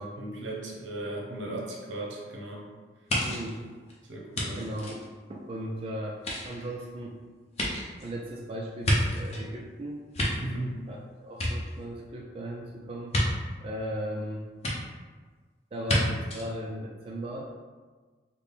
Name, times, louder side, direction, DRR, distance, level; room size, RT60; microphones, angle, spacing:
voice 1, 0.0-2.7 4.1-4.7 10.4-10.8, right 1 dB, 85° right, -1 dB, 0.8 m, -36 dB
sound 1, 3.1-5.7 6.1-9.5 9.9-11.0 11.3-12.2 13.1-13.3 14.6-14.7 15.8-16.0 16.3-16.5, left 1 dB, 35° left, 0.6 m, -30 dB
voice 2, 3.2-3.6 4.5-7.2 8.0-10.1 10.9-13.2 13.6-14.5 15.7-17.4, right 1 dB, 30° right, -2 dB, 0.3 m, -37 dB
4.1 x 2.1 x 3.4 m, 1.4 s
head